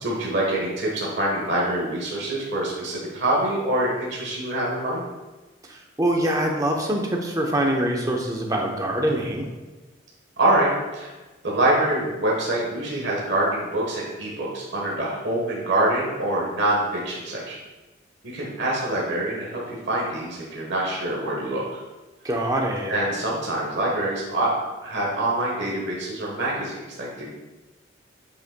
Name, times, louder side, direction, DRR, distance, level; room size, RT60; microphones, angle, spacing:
voice 1, 0.0-5.0 10.4-11.1 11.4-17.6 18.2-21.8 22.9-24.5 24.8-27.3, right 1 dB, 70° right, -4 dB, 1.2 m, -25 dB
voice 2, 5.6-9.5 22.2-22.9, right 1 dB, 15° right, 1 dB, 0.7 m, -24 dB
8.4 x 5.3 x 2.2 m, 1.2 s
head